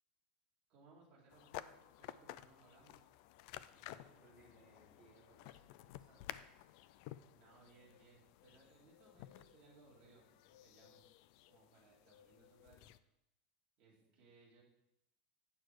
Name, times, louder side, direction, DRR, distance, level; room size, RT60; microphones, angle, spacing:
voice 1, 0.7-3.1 7.3-11.0 11.5-12.9 13.8-14.6, right 3 dB, 30° right, -4 dB, 2.7 m, -66 dB
sound 1, 1.3-13.0, left 14 dB, 40° left, 0.3 m, -54 dB
voice 2, 3.7-6.3 13.9-14.3, right 2 dB, 15° right, -7 dB, 2.8 m, -67 dB
8.7 x 6.4 x 4.6 m, 0.84 s
supercardioid pair, 180°, 5 cm